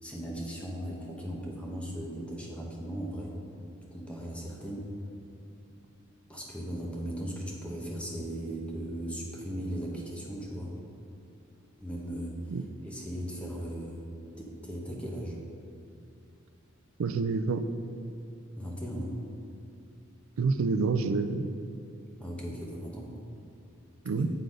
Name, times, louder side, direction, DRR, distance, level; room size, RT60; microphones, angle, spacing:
voice 1, 0.0-3.3 3.9-4.9 6.3-10.8 11.8-12.3 12.8-14.0 14.4-15.4 18.5-19.2 22.2-23.1 24.2-24.3, equal, 5° left, -3 dB, 1.0 m, -37 dB
voice 2, 17.0-17.6 20.4-21.4 24.0-24.3, right 4 dB, 85° right, 10 dB, 0.4 m, -27 dB
7.7 x 4.0 x 5.0 m, 2.6 s
head